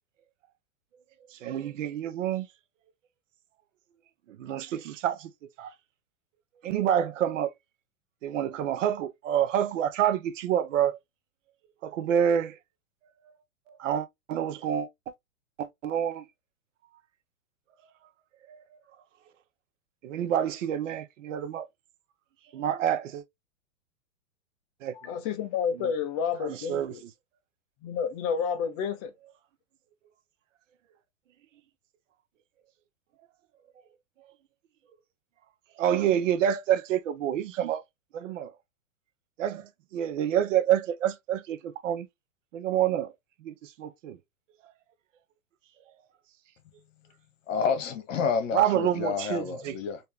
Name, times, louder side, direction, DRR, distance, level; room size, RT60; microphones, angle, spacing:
voice 1, 1.3-2.5 4.3-5.3 5.6-5.7 6.6-7.5 8.2-11.0 11.8-12.6 13.7-15.1 15.6-16.3 18.5-18.6 20.0-21.7 22.5-23.2 24.8-25.0 25.7-25.9 26.4-27.1 35.8-37.8 38.1-38.5 39.4-42.1 42.5-43.1 43.4-44.2 44.6-44.7 48.5-49.8, right 10 dB, 60° right, 0.8 m, -28 dB
voice 2, 25.0-27.0 27.8-29.1, left 7 dB, 30° left, 0.6 m, -30 dB
voice 3, 47.5-50.0, left 6 dB, 65° left, 1.3 m, -29 dB
3.4 x 2.7 x 3.3 m
hypercardioid pair, 140°, 42 cm